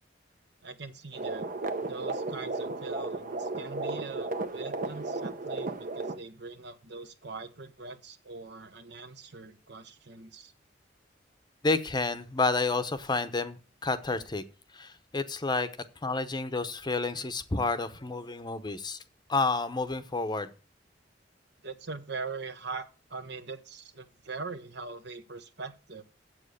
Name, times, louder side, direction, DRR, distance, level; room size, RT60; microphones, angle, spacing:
voice 1, 0.6-1.5 1.9-10.5 21.6-26.0, right 4 dB, 65° right, 9 dB, 1.1 m, -42 dB
sound 1, 1.1-6.2, right 2 dB, 50° right, 0.9 m, -34 dB
voice 2, 11.6-14.4 14.7-15.7 16.0-19.0 19.3-20.5, left 3 dB, 25° left, 11 dB, 0.8 m, -30 dB
7.6 x 7.6 x 6.5 m, 0.35 s
head